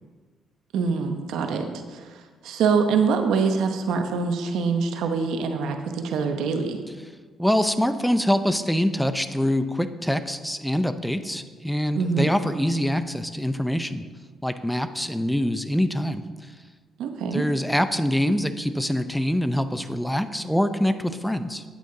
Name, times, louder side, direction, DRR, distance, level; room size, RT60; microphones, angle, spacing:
voice 1, 0.7-2.1 2.4-6.8 12.0-12.4 17.0-17.4, right 5 dB, 80° right, 6 dB, 0.9 m, -24 dB
voice 2, 7.4-14.0 14.4-16.2 17.3-21.6, equal, 5° left, 11 dB, 0.5 m, -24 dB
8.7 x 8.4 x 3.8 m, 1.4 s
cardioid pair, 90°, 0 cm